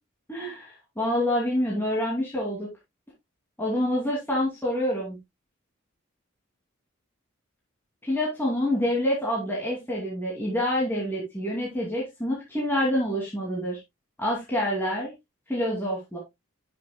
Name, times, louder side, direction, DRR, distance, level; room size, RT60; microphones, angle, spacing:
voice 1, 0.3-2.7 3.6-5.2 8.0-13.8 14.2-15.1 15.5-16.2, left 1 dB, 10° left, -4 dB, 2.5 m, -27 dB
11.0 x 6.5 x 2.2 m, 0.20 s
head